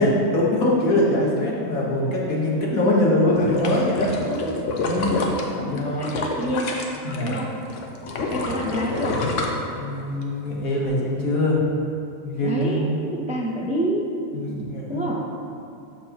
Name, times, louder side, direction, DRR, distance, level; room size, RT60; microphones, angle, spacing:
voice 1, 0.0-4.1 4.8-5.1 5.6-6.1 7.0-7.4 9.7-11.7 12.2-12.9 14.3-15.0, left 1 dB, 90° left, -4 dB, 1.8 m, -22 dB
sound 1, 3.3-7.4 7.7-10.2 10.7-10.8, left 2 dB, 65° left, 1.1 m, -28 dB
voice 2, 4.2-4.6 5.0-5.4 5.6-6.8 7.2-7.5 8.3-9.2 12.4-14.1 14.9-15.2, equal, 10° right, -2 dB, 0.4 m, -28 dB
12.5 x 4.6 x 3.0 m, 2.7 s
omnidirectional pair, 1.4 m